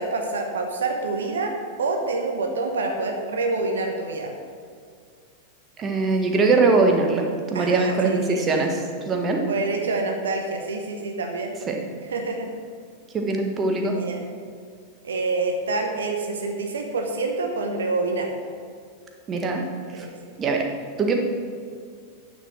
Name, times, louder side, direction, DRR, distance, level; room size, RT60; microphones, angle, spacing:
voice 1, 0.0-4.3 7.5-8.7 9.5-11.6 12.0-12.5 13.9-14.2 15.0-18.3 19.9-20.1, right 3 dB, 65° right, 3 dB, 1.0 m, -27 dB
voice 2, 5.8-9.4 11.7-11.8 13.1-14.0 19.3-19.6 20.0-20.1 20.4-20.7 21.0-21.2, right 3 dB, 25° right, 2 dB, 1.4 m, -22 dB
9.7 x 7.5 x 6.2 m, 2.1 s
figure-of-eight pair, 90°, 0 cm